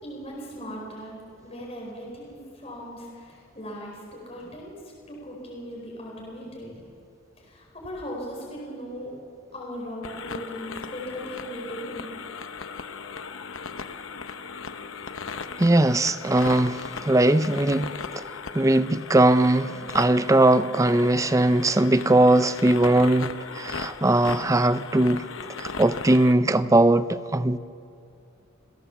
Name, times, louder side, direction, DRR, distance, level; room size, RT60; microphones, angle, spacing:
voice 1, 0.0-4.8 5.1-6.8 7.4-9.1 9.5-12.1, equal, 30° left, -3 dB, 4.5 m, -38 dB
sound 1, 10.0-26.3, left 5 dB, 70° left, 1.0 m, -37 dB
voice 2, 15.6-17.9 18.5-25.2 25.6-27.6, right 1 dB, 15° right, 13 dB, 0.5 m, -20 dB
27.5 x 17.0 x 7.2 m, 2.5 s
head